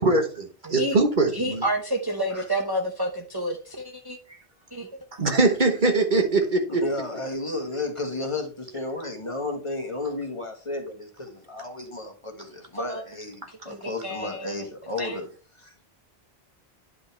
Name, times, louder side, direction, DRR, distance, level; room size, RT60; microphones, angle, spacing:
voice 1, 0.0-1.6 5.1-6.8, right 2 dB, 50° right, 1.2 m, -22 dB
voice 2, 0.7-1.0 1.3-4.2 4.7-4.9 6.1-6.2 12.7-13.0 13.7-14.5 15.0-15.2, right 1 dB, 25° right, 0.9 m, -29 dB
voice 3, 6.8-15.3 15.6-15.9, left 2 dB, 30° left, 1.5 m, -33 dB
9.8 x 5.3 x 3.3 m
omnidirectional pair, 1.1 m